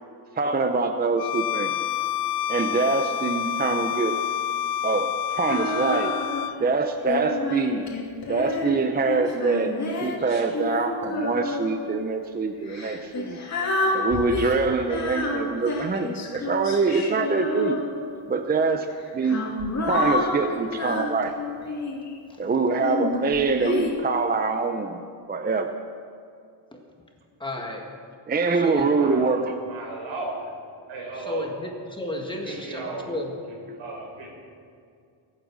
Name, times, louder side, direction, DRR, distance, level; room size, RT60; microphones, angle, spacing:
voice 1, 0.4-1.7 2.5-4.2 4.8-6.1 6.6-7.9 8.3-9.7 10.0-13.4 13.9-17.8 18.3-18.9 19.1-19.5 19.9-21.3 22.4-25.0 25.3-25.7 28.3-29.6, right 4 dB, 20° right, 6 dB, 0.7 m, -24 dB
Bowed string instrument, 1.2-6.6, left 10 dB, 55° left, 0.6 m, -28 dB
Female singing, 5.5-6.5 7.1-11.9 12.7-18.2 19.0-22.1 22.8-23.9, left 2 dB, 35° left, 2.9 m, -29 dB
voice 2, 27.4-27.9 28.5-28.9 31.1-33.3, left 1 dB, 10° left, 1 dB, 1.8 m, -33 dB
voice 3, 29.0-29.4 29.7-30.5 30.9-31.5 32.3-33.1 33.5-34.3, right 3 dB, 75° right, 0 dB, 5.3 m, -35 dB
22.5 x 9.0 x 6.3 m, 2.3 s
cardioid pair, 140°, 47 cm